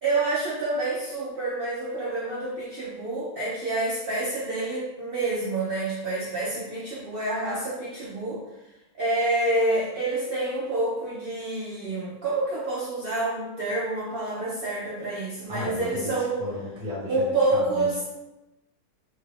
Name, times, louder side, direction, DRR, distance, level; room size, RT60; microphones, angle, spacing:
voice 1, 0.0-8.4 9.0-16.4 17.1-18.0, right 2 dB, 70° right, -6 dB, 0.5 m, -28 dB
voice 2, 15.5-18.1, left 2 dB, 40° right, -6 dB, 1.1 m, -34 dB
2.9 x 2.3 x 3.3 m, 1.0 s
omnidirectional pair, 1.7 m